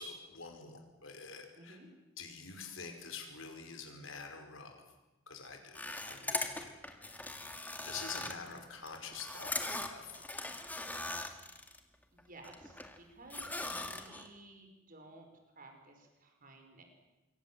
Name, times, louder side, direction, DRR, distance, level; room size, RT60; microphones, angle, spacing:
voice 1, 0.0-1.8 2.2-4.8 5.3-5.8 6.1-6.8 7.1-7.2 7.8-10.2, left 5 dB, 80° left, 4 dB, 5.3 m, -47 dB
voice 2, 1.6-1.9 12.1-15.3 15.6-16.8, right 2 dB, 45° right, 4 dB, 5.3 m, -55 dB
sound 1, 5.7-11.8 12.2-13.0 13.3-14.3, left 2 dB, 10° left, 2.1 m, -40 dB
26.5 x 23.5 x 7.7 m, 1.0 s
head